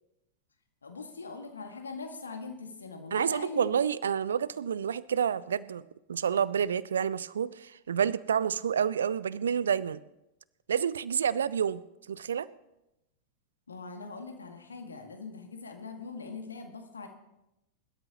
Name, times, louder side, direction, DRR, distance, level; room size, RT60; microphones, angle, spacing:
voice 1, 0.8-3.7 13.7-17.1, left 4 dB, 75° left, 5 dB, 1.9 m, -42 dB
voice 2, 3.1-10.0 10.7-12.5, right 8 dB, 65° right, 20 dB, 0.4 m, -29 dB
22.5 x 12.5 x 3.0 m, 0.89 s
figure-of-eight pair, 90°, 0 cm